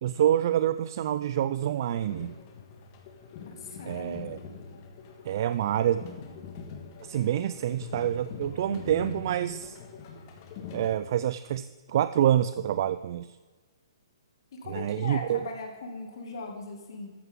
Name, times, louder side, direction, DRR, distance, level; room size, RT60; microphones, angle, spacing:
voice 1, 0.0-2.3 3.8-4.4 5.2-6.0 7.0-9.8 10.7-13.4 14.7-15.4, right 11 dB, 45° right, 13 dB, 0.4 m, -27 dB
sound 1, 1.7-10.9, left 6 dB, 35° left, 1.6 m, -44 dB
voice 2, 3.4-4.3 14.5-17.1, left 3 dB, 55° left, 2 dB, 2.3 m, -39 dB
13.5 x 9.3 x 3.7 m, 1.4 s
hypercardioid pair, 155°, 3 cm